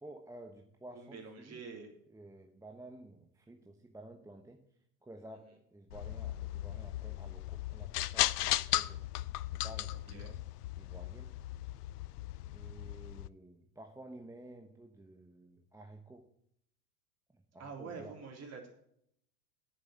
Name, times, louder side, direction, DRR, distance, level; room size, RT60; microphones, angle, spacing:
voice 1, 0.0-1.6 2.1-4.6 5.0-9.1 9.5-10.5 10.8-11.3 12.5-16.3 17.3-18.2, right 1 dB, 5° right, 4 dB, 1.0 m, -52 dB
voice 2, 0.9-1.9 9.9-10.3 17.6-18.7, right 5 dB, 35° right, 1 dB, 3.4 m, -46 dB
sound 1, 5.9-13.3, left 15 dB, 80° left, 0.6 m, -36 dB
8.9 x 7.3 x 7.6 m, 0.73 s
hypercardioid pair, 95°, 45 cm